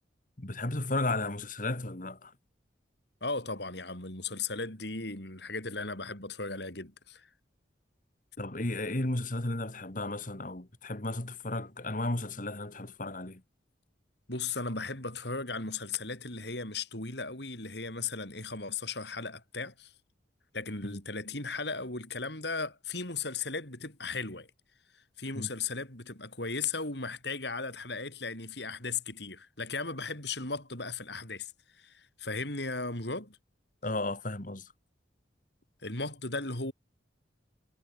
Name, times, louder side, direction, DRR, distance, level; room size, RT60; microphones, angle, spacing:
voice 1, 0.4-2.3 8.4-13.4 20.8-21.0 25.4-25.5 33.8-34.6, left 2 dB, 45° left, 1.9 m, -34 dB
voice 2, 3.2-7.3 14.3-19.9 20.5-24.5 24.9-31.5 31.8-33.4 35.8-36.7, left 4 dB, 60° left, 6.3 m, -36 dB
head